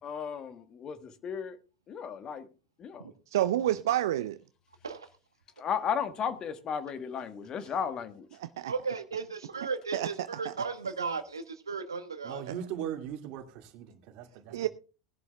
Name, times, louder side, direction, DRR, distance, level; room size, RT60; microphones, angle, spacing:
voice 1, 0.0-1.6 1.9-2.5 2.8-3.1 5.6-8.3, left 7 dB, 35° left, 1.4 m, -34 dB
voice 2, 3.3-4.4 8.4-8.7 9.9-10.1 10.5-10.6 12.5-12.6 14.5-14.7, right 12 dB, 65° right, 0.5 m, -28 dB
voice 3, 8.7-12.4, right 4 dB, 85° right, 1.2 m, -35 dB
voice 4, 12.2-14.6, right 9 dB, 50° right, 2.3 m, -39 dB
19.5 x 11.0 x 2.3 m
figure-of-eight pair, 80°, 2 cm